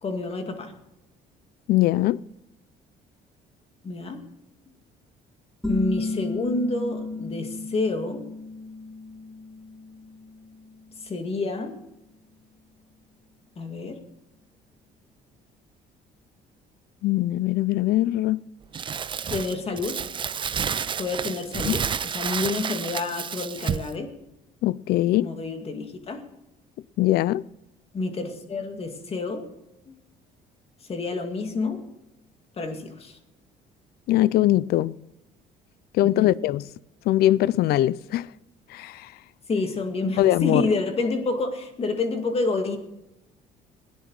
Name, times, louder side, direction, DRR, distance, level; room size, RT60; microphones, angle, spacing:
voice 1, 0.0-0.7 3.8-4.2 5.7-8.3 11.0-11.7 13.6-14.0 19.3-20.0 21.0-24.1 25.2-26.2 27.9-29.5 30.9-31.8 32.6-33.2 36.0-36.3 39.5-42.8, left 3 dB, 35° left, 2.2 m, -28 dB
voice 2, 1.7-2.2 17.0-18.4 21.6-21.8 24.6-25.3 27.0-27.5 34.1-35.0 35.9-36.7 37.1-38.3 38.7-39.1 40.2-40.6, left 15 dB, 70° left, 0.4 m, -21 dB
sound 1, 5.6-11.0, left 3 dB, 5° left, 1.6 m, -33 dB
Crumpling crinkling, 18.7-23.9, right 7 dB, 30° right, 0.4 m, -30 dB
17.0 x 10.0 x 4.7 m
cardioid pair, 110°, 17 cm